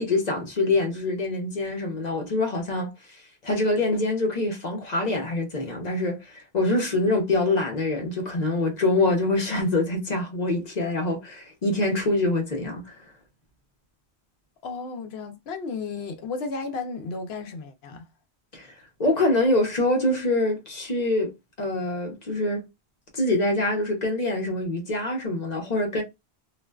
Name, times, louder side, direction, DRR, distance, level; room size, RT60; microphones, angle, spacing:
voice 1, 0.0-2.9 3.4-13.0 18.5-18.7 19.0-22.7 23.1-26.0, left 2 dB, 45° left, 0.9 m, -25 dB
voice 2, 14.6-18.0, left 4 dB, 75° left, 0.9 m, -33 dB
2.5 x 2.2 x 2.3 m
omnidirectional pair, 1.1 m